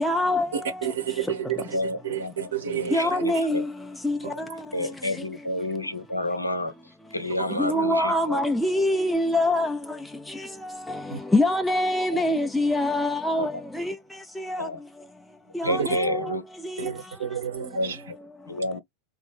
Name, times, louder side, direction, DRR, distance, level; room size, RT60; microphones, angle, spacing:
voice 1, 0.0-0.9 2.9-5.3 5.7-5.8 7.5-17.2 18.4-18.6, left 1 dB, 5° left, 0.3 m, -26 dB
voice 2, 0.5-3.4 4.2-4.3 7.4-7.7 11.1-11.2 15.6-15.9 16.8-18.0, right 9 dB, 65° right, 0.8 m, -31 dB
voice 3, 1.7-3.6 4.7-6.7 7.1-8.4 12.1-12.2 13.4-13.5 14.6-14.8 15.6-16.4 17.6-18.2 18.5-18.8, left 1 dB, 85° left, 0.5 m, -30 dB
2.6 x 2.5 x 2.3 m
figure-of-eight pair, 90°, 0 cm